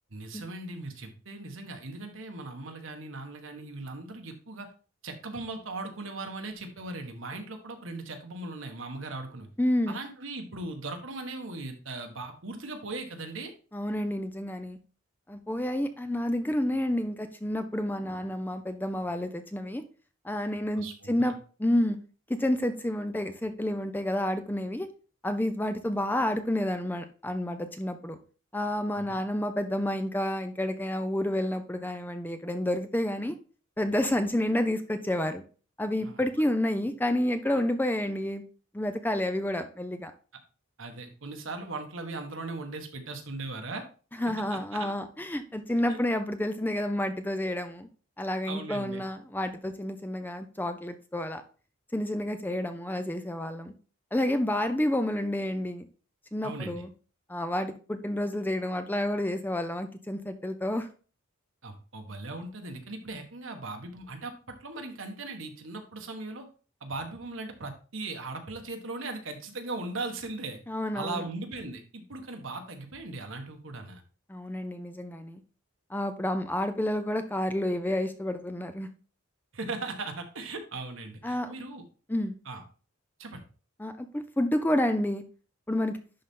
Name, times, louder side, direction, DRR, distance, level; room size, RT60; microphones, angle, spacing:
voice 1, 0.1-4.7 5.0-9.5 9.9-13.5 20.8-21.3 29.0-29.1 36.0-36.2 40.8-43.8 44.2-44.9 45.9-46.0 48.5-49.0 56.4-56.8 61.6-66.4 66.8-70.6 70.9-74.0 79.5-81.8 82.4-82.6 83.2-83.4, right 3 dB, 70° right, 4 dB, 1.5 m, -38 dB
voice 2, 9.6-10.0 13.7-14.8 15.3-19.8 20.2-21.3 21.6-22.0 22.4-24.9 25.2-28.2 28.5-33.4 33.8-35.4 35.8-38.4 38.7-40.1 44.2-47.9 48.2-51.4 51.9-53.7 54.1-55.9 56.3-56.9 57.3-60.9 70.7-71.2 74.3-75.4 75.9-78.9 81.2-81.5 82.1-82.4 83.8-85.2 85.7-86.0, left 1 dB, 10° left, 8 dB, 0.6 m, -29 dB
11.0 x 4.1 x 3.7 m, 0.37 s
head